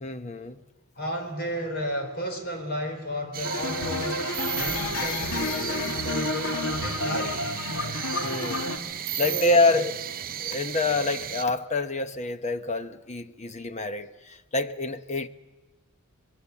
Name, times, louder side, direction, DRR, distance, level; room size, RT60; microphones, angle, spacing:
voice 1, 0.0-0.6 8.2-8.7 9.2-10.0 10.4-15.3, left 3 dB, 35° left, 1.0 m, -27 dB
voice 2, 1.0-4.3 4.5-7.4 9.1-9.8, equal, 50° left, 4.2 m, -33 dB
sound 1, 3.3-11.4, right 10 dB, 45° right, 0.8 m, -35 dB
sound 2, 3.4-8.8, left 2 dB, 80° left, 2.3 m, -30 dB
25.0 x 22.0 x 7.2 m
head